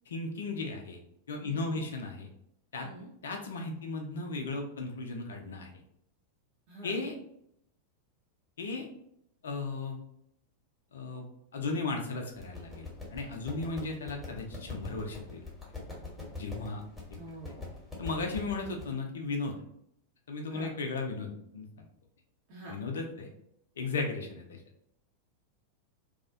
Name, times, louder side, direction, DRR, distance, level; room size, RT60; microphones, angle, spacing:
voice 1, 0.1-1.0 1.3-2.3 2.7-2.9 3.2-5.7 6.8-7.1 8.6-8.9 9.4-10.0 10.9-11.3 11.5-15.4 16.4-16.8 18.0-19.5 20.3-21.6 22.7-23.3 23.8-24.6, left 3 dB, 65° left, 3 dB, 0.5 m, -35 dB
voice 2, 1.4-1.8 2.8-3.1 6.7-7.0 17.2-17.7 20.5-20.7 22.5-22.8, right 1 dB, 45° right, -4 dB, 0.7 m, -46 dB
sound 1, 12.3-18.8, left 3 dB, 10° left, 1.0 m, -44 dB
2.4 x 2.1 x 2.5 m, 0.72 s
figure-of-eight pair, 90°, 0 cm